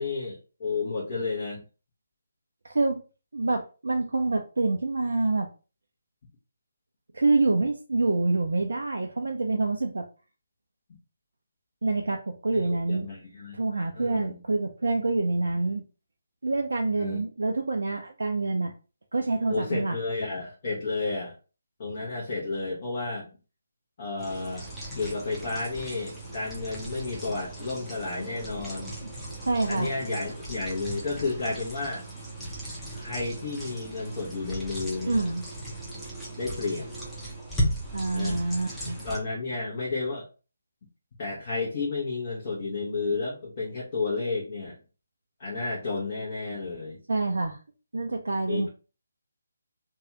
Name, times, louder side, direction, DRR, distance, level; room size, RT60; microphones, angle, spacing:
voice 1, 0.0-1.6 12.5-13.6 13.9-14.4 16.9-17.2 19.5-21.3 21.8-23.2 24.0-24.7 25.0-29.0 29.7-32.1 32.9-35.3 36.4-36.9 38.1-38.4 39.0-40.3 41.2-44.8 45.4-47.0 48.5-48.7, left 3 dB, 35° left, -4 dB, 0.8 m, -32 dB
voice 2, 2.6-3.0 3.3-5.5 7.1-10.1 11.8-13.1 13.5-15.8 16.4-18.7 19.1-20.0 29.0-29.1 29.4-29.9 35.1-35.4 37.9-39.0 47.1-47.6 47.9-48.7, right 3 dB, 65° right, 3 dB, 0.4 m, -26 dB
sound 1, 24.2-39.2, right 1 dB, 5° left, 0.7 m, -37 dB
2.7 x 2.3 x 3.0 m, 0.34 s
figure-of-eight pair, 145°, 0 cm